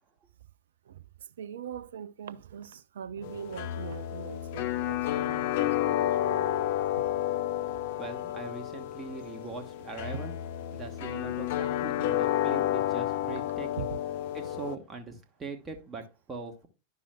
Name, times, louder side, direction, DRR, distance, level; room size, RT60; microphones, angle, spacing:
voice 1, 1.4-6.5 13.8-14.0, right 9 dB, 60° right, 0.3 m, -41 dB
sound 1, 3.2-14.7, left 12 dB, 50° left, 0.6 m, -31 dB
voice 2, 7.8-10.3 10.7-13.9 14.3-16.7, right 4 dB, 20° right, 1.1 m, -41 dB
10.0 x 6.1 x 2.2 m
figure-of-eight pair, 90°, 0 cm